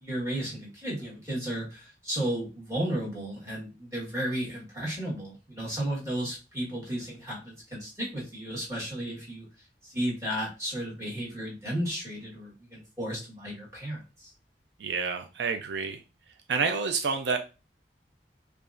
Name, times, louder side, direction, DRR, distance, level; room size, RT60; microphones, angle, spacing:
voice 1, 0.0-9.5 9.9-14.3, right 1 dB, 15° right, -5 dB, 1.5 m, -33 dB
voice 2, 14.8-16.0 16.5-17.4, right 5 dB, 80° right, 7 dB, 0.4 m, -28 dB
4.8 x 2.4 x 2.5 m, 0.30 s
head